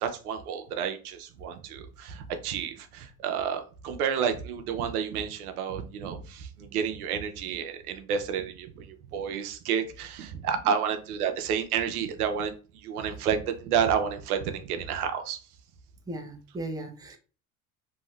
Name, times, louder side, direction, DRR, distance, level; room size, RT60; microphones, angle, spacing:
voice 1, 0.0-8.9 9.1-12.5 12.8-15.4, right 7 dB, 90° right, 6 dB, 0.7 m, -30 dB
voice 2, 16.1-17.2, right 1 dB, 10° right, 4 dB, 0.6 m, -37 dB
2.7 x 2.6 x 3.2 m, 0.36 s
hypercardioid pair, 80°, 43 cm